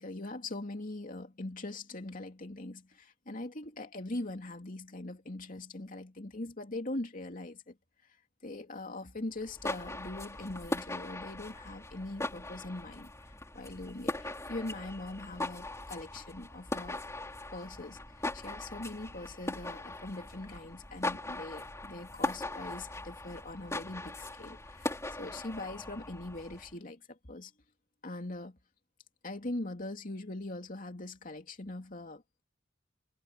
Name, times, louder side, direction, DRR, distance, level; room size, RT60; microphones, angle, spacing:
voice 1, 0.0-7.8 8.4-17.0 17.5-18.0 18.3-27.5 28.0-28.6 29.2-32.2, left 2 dB, 45° left, 2.7 m, -42 dB
tennis-in-dome-medium-close-ah, 9.4-26.7, left 2 dB, 15° left, 3.5 m, -40 dB
head